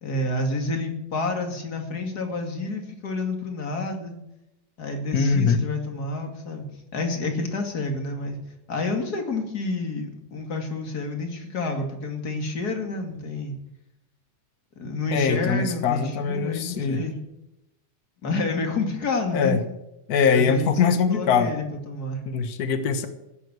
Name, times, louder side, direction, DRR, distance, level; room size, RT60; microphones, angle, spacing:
voice 1, 0.0-4.1 4.8-6.6 6.9-8.4 8.7-13.5 14.8-17.2 18.2-19.5 20.3-22.2, left 3 dB, 35° left, 4 dB, 2.5 m, -29 dB
voice 2, 5.1-5.6 15.1-17.0 19.3-19.6 20.1-21.5 22.3-23.1, left 5 dB, 85° left, 9 dB, 0.8 m, -22 dB
15.5 x 9.3 x 8.2 m, 0.88 s
omnidirectional pair, 3.5 m